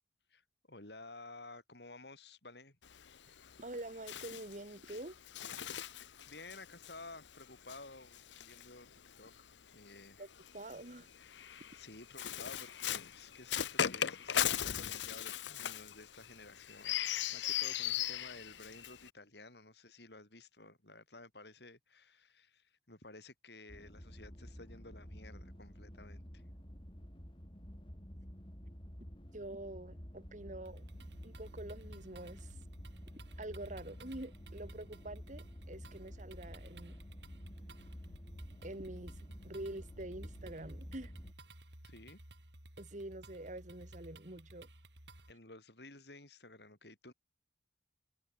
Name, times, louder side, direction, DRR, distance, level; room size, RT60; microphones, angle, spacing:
voice 1, 0.3-2.8 6.3-8.9 9.2-10.3 10.6-11.0 11.7-26.4 41.8-42.2 45.3-47.1, left 2 dB, 65° left, 6.8 m, -54 dB
Bird, 2.8-9.4 10.3-19.1, left 10 dB, 90° left, 0.9 m, -39 dB
voice 2, 3.6-5.2 10.2-10.3 10.5-11.1 29.3-30.9 31.2-32.5 33.4-37.0 38.6-41.1 42.8-44.7, right 1 dB, 45° right, 2.2 m, -46 dB
sound 1, 23.7-41.3, equal, 30° left, 4.2 m, -51 dB
sound 2, 30.7-45.3, right 1 dB, 80° right, 7.7 m, -56 dB
head